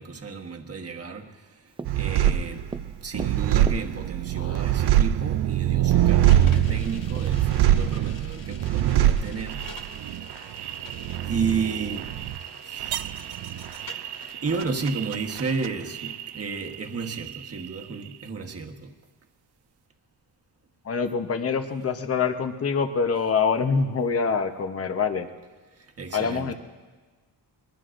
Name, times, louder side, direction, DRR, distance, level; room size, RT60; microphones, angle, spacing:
voice 1, 0.0-1.6 1.9-9.6 10.8-12.1 12.6-12.9 13.6-18.9 25.8-26.5, right 5 dB, 35° right, 3 dB, 1.3 m, -33 dB
Tap, 1.8-4.4 5.3-5.4 5.7-5.9 6.2-7.6, right 3 dB, 15° right, 0.4 m, -39 dB
sound 1, 1.9-16.8 17.0-17.8, right 12 dB, 65° right, 0.5 m, -24 dB
voice 2, 4.4-4.8 7.9-8.0 20.8-25.3 26.1-26.5, left 5 dB, 35° left, 7 dB, 0.9 m, -25 dB
sound 2, 6.2-14.4, left 4 dB, 50° left, 1.4 m, -47 dB
22.0 x 21.5 x 2.6 m, 1.3 s
wide cardioid pair, 145°, 42 cm